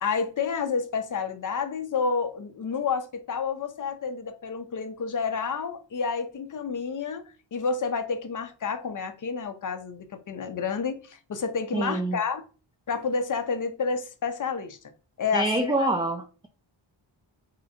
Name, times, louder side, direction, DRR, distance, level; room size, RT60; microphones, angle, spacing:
voice 1, 0.0-12.4 12.9-14.9 15.2-15.9, left 5 dB, 40° left, 0.6 m, -30 dB
voice 2, 11.7-12.2 15.3-16.5, right 2 dB, 10° right, 0.3 m, -26 dB
3.9 x 3.2 x 2.7 m
wide cardioid pair, 115°, 47 cm